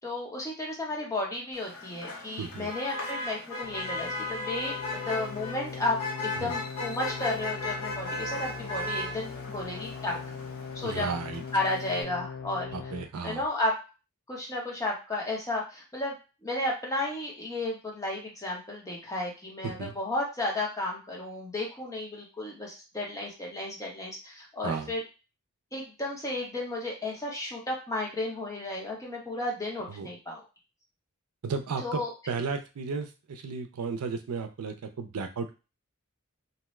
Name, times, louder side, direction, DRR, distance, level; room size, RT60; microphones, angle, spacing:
voice 1, 0.0-10.2 10.7-11.1 11.5-12.7 13.2-13.7 14.3-16.1 16.4-25.0 25.7-30.4 31.8-32.1, left 2 dB, 15° left, -2 dB, 0.9 m, -33 dB
Motor vehicle (road), 1.5-12.0, left 2 dB, 75° left, 0.8 m, -37 dB
voice 2, 2.4-2.7 6.4-6.5 10.8-11.4 12.7-13.4 19.6-19.9 24.6-24.9 29.9-30.1 31.4-35.5, right 5 dB, 80° right, 6 dB, 0.5 m, -34 dB
sound 1, 3.6-13.0, left 6 dB, 50° left, 0.5 m, -41 dB
2.7 x 2.3 x 3.1 m, 0.30 s
head